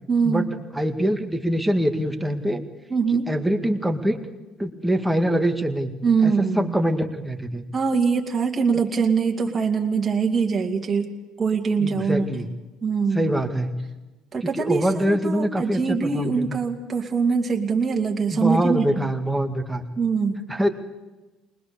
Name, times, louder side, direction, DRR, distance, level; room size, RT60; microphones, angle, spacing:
voice 1, 0.1-0.5 2.9-3.3 6.0-6.8 7.7-11.1 11.4-12.2 12.8-13.3 14.3-19.1 20.0-20.4, right 5 dB, 25° right, 0 dB, 2.4 m, -23 dB
voice 2, 0.7-2.6 3.3-4.2 4.6-5.9 6.2-7.6 11.8-12.5 13.1-13.8 14.4-16.6 18.3-19.8 20.5-20.7, equal, 5° right, 5 dB, 2.0 m, -24 dB
21.0 x 20.5 x 7.0 m, 1.1 s
supercardioid pair, 105°, 0 cm